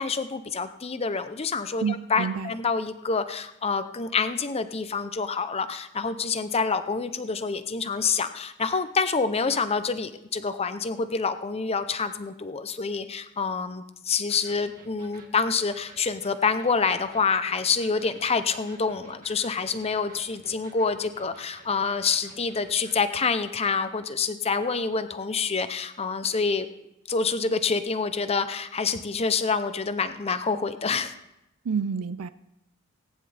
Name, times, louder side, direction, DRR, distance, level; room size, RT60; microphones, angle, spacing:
voice 1, 0.0-26.7 27.1-31.1, left 5 dB, 25° left, 11 dB, 0.6 m, -27 dB
voice 2, 1.8-2.5 31.6-32.3, right 6 dB, 80° right, 14 dB, 0.5 m, -28 dB
Electric guitar, 14.3-23.0, right 2 dB, 40° right, 2.3 m, -52 dB
19.0 x 10.0 x 3.4 m, 0.88 s
head